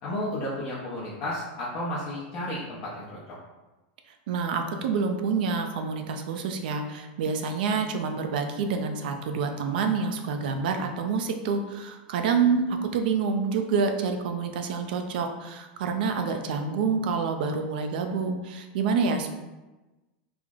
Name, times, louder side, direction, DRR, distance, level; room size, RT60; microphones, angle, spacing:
voice 1, 0.0-3.3, left 1 dB, 40° left, -7 dB, 0.7 m, -33 dB
voice 2, 4.3-19.3, right 5 dB, 70° right, 5 dB, 0.4 m, -27 dB
3.2 x 2.0 x 3.5 m, 1.1 s
supercardioid pair, 150°, 5 cm